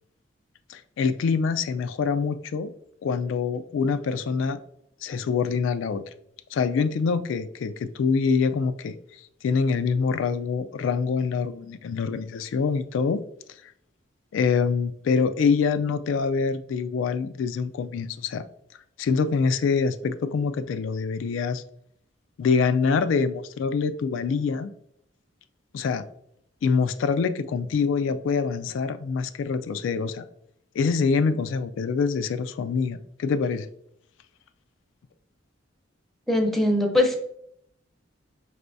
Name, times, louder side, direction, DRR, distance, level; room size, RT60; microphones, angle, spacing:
voice 1, 0.7-2.7 3.0-4.6 5.0-6.0 6.5-13.2 14.3-18.4 19.0-21.6 22.4-24.7 25.7-26.0 26.6-30.2 30.8-33.7, left 5 dB, 80° left, 10 dB, 0.3 m, -25 dB
voice 2, 36.3-37.2, left 1 dB, ahead, 2 dB, 0.6 m, -21 dB
5.3 x 3.3 x 2.6 m, 0.72 s
head